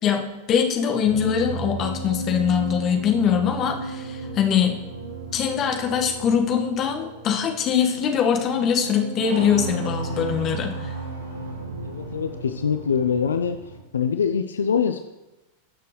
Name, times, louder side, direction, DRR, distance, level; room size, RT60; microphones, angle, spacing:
voice 1, 0.5-4.7 5.3-10.9, left 7 dB, 30° left, 3 dB, 1.6 m, -22 dB
sound 1, 1.0-13.8, right 2 dB, 70° right, 4.2 m, -34 dB
voice 2, 11.8-13.6 13.9-15.0, left 7 dB, 70° left, 8 dB, 0.5 m, -23 dB
19.0 x 6.8 x 3.2 m, 1.0 s
figure-of-eight pair, 90°, 0 cm